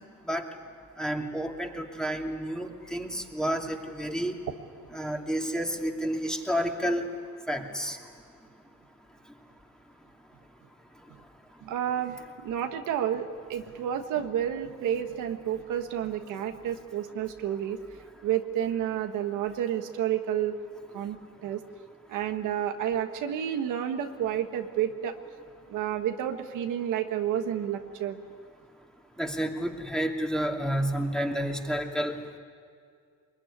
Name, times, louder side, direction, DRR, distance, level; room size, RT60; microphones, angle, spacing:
voice 1, 1.0-4.4 4.9-7.1 7.5-8.0 29.2-32.1, equal, ahead, 2 dB, 2.7 m, -30 dB
voice 2, 11.6-17.8 18.2-20.6 20.9-21.2 21.4-21.6 22.1-25.1 25.7-28.2, right 10 dB, 90° right, 6 dB, 1.5 m, -30 dB
23.0 x 21.5 x 9.9 m, 2.2 s
cardioid pair, 90°, 30 cm